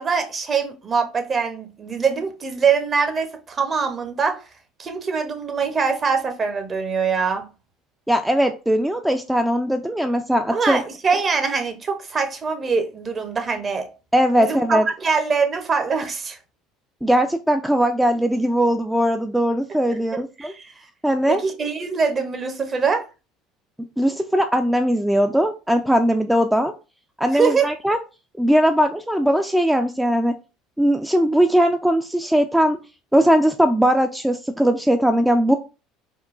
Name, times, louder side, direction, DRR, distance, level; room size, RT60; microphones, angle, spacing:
voice 1, 0.0-4.4 4.8-7.5 10.5-13.9 14.3-16.4 20.4-20.7 21.3-23.1 27.3-27.7, right 5 dB, 35° right, 0.7 m, -23 dB
voice 2, 8.1-10.8 14.1-14.9 17.0-20.5 21.0-21.4 24.0-26.7 27.2-28.0 28.4-30.3 30.8-32.8 33.1-35.6, equal, 5° right, 0.3 m, -19 dB
3.6 x 2.2 x 2.5 m
supercardioid pair, 90°, 0 cm